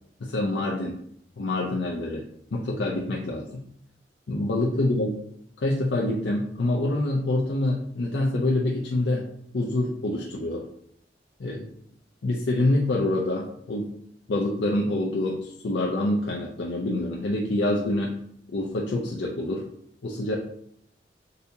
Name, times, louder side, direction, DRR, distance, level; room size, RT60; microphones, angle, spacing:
voice 1, 0.2-1.0 1.4-2.2 2.5-3.6 4.3-5.2 5.6-9.3 9.5-10.7 11.4-11.7 12.2-13.9 14.3-18.2 18.5-19.7 20.0-20.4, left 1 dB, 85° left, -2 dB, 0.5 m, -26 dB
4.0 x 2.7 x 2.6 m, 0.69 s
head